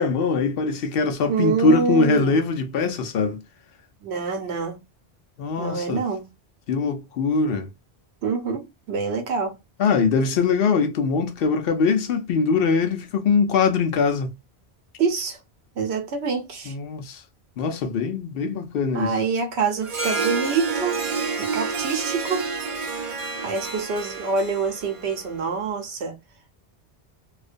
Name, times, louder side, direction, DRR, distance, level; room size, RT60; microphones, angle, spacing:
voice 1, 0.0-3.4 5.4-6.0 6.7-7.7 9.8-14.3 16.7-17.2 17.6-19.1, left 4 dB, 70° left, 0.7 m, -22 dB
voice 2, 1.3-2.4 4.0-4.8 5.6-6.3 8.2-9.6 15.0-15.4 15.8-16.7 18.9-21.0 21.3-22.5 23.4-26.1, right 4 dB, 90° right, 1.0 m, -26 dB
Harp, 19.8-25.6, right 4 dB, 40° right, 0.6 m, -29 dB
2.4 x 2.2 x 2.5 m
omnidirectional pair, 1.1 m